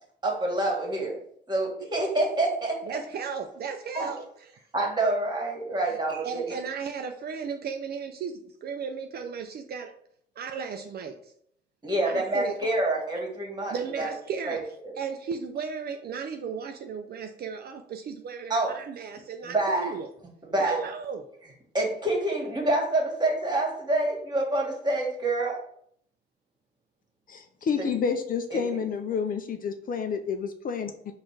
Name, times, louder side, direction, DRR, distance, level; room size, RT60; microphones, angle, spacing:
voice 1, 0.2-1.2 1.5-3.0 3.9-4.1 4.7-6.4 11.8-14.1 14.4-14.9 18.5-18.7 19.4-19.9 20.4-20.8 21.7-25.6 28.5-28.8, right 2 dB, 20° right, -1 dB, 1.6 m, -27 dB
voice 2, 2.9-4.3 5.9-6.0 6.2-9.9 10.4-11.3 12.1-12.5 13.7-14.6 15.0-20.1 20.6-21.3, right 6 dB, 55° right, 5 dB, 0.4 m, -35 dB
voice 3, 27.3-30.9, left 6 dB, 45° left, 7 dB, 0.4 m, -29 dB
4.3 x 2.5 x 4.6 m, 0.66 s
cardioid pair, 90°, 20 cm